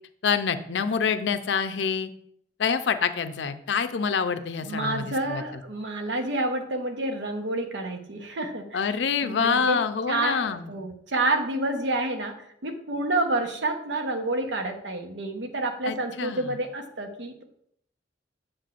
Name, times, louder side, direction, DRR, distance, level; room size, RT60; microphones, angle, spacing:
voice 1, 0.2-2.1 2.6-5.4 8.7-10.7 15.9-16.5, left 6 dB, 80° left, 9 dB, 0.5 m, -26 dB
voice 2, 4.6-8.8 9.2-9.8 10.1-17.4, right 2 dB, 80° right, 5 dB, 0.8 m, -29 dB
7.5 x 6.1 x 2.5 m, 0.71 s
head